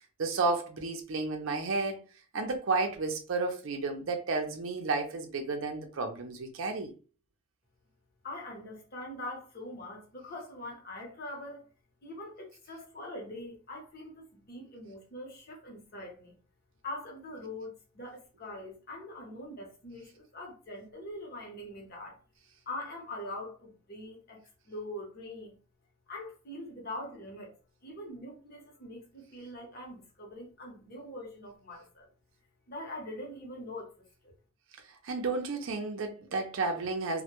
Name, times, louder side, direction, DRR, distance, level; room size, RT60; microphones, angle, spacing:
voice 1, 0.2-2.0 2.3-6.9 35.0-37.2, right 3 dB, 65° right, 0.5 m, -32 dB
voice 2, 8.2-11.7 12.0-16.3 16.8-22.2 22.7-25.6 26.1-27.5 27.8-32.1 32.7-33.9 34.2-34.3, left 1 dB, 50° left, 0.8 m, -43 dB
2.1 x 2.1 x 2.9 m
head